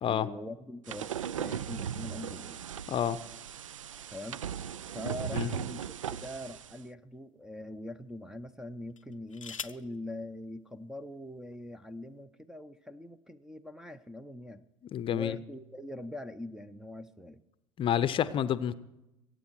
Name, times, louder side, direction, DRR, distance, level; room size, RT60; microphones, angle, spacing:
voice 1, 0.0-2.6 4.1-4.4 4.9-14.7 15.1-17.4 18.1-18.3, left 1 dB, 5° right, 16 dB, 0.6 m, -43 dB
sound 1, 0.9-6.8, right 9 dB, 80° right, 0.4 m, -38 dB
voice 2, 2.9-3.2 5.3-5.5 14.9-15.4 17.8-18.7, left 9 dB, 30° left, 14 dB, 0.7 m, -29 dB
sound 2, 7.1-7.3 8.9-10.0 11.1-11.2 11.5-11.9, left 6 dB, 90° left, 0.6 m, -45 dB
22.5 x 9.1 x 4.5 m, 0.91 s
figure-of-eight pair, 75°, 16 cm